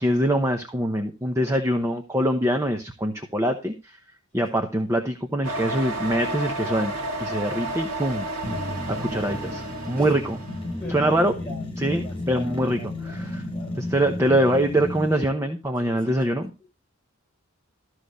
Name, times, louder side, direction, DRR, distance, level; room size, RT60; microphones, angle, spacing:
voice 1, 0.0-4.0 4.3-6.9 7.2-8.5 8.9-10.4 10.9-11.3 11.8-13.4 13.7-16.5, right 1 dB, 10° right, 0.8 m, -24 dB
sound 1, 5.4-10.8, right 1 dB, 70° right, 1.7 m, -31 dB
sound 2, 8.4-15.2, left 1 dB, 25° left, 6.4 m, -33 dB
voice 2, 10.8-11.1 11.4-13.8 15.8-16.2, left 1 dB, 5° left, 4.8 m, -41 dB
13.5 x 6.4 x 4.1 m
head